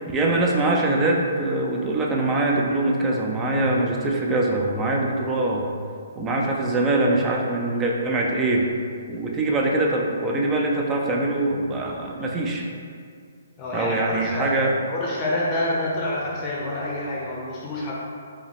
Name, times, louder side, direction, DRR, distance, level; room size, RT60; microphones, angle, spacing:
voice 1, 0.1-5.7 6.2-8.6 9.1-12.7 13.7-14.7, right 2 dB, 15° right, -1 dB, 0.5 m, -23 dB
voice 2, 13.6-14.6 14.9-17.9, left 1 dB, 25° left, -5 dB, 0.7 m, -27 dB
4.9 x 2.1 x 3.4 m, 2.2 s
hypercardioid pair, 145°, 0 cm